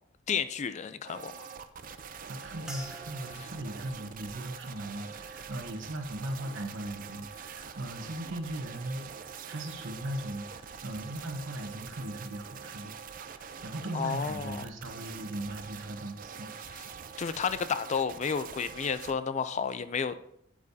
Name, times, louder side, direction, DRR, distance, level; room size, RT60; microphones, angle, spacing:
voice 1, 0.3-1.5 13.9-14.6 17.2-20.2, left 6 dB, 35° left, 12 dB, 0.4 m, -31 dB
sound 1, 1.1-19.1, right 6 dB, 45° right, 0.5 m, -45 dB
voice 2, 2.3-13.0 13.3-16.5, right 1 dB, 75° right, 5 dB, 1.2 m, -38 dB
sound 2, 2.7-7.2 7.5-8.2 8.8-9.0, right 1 dB, 5° right, 0.9 m, -51 dB
8.7 x 8.3 x 2.7 m, 0.75 s
head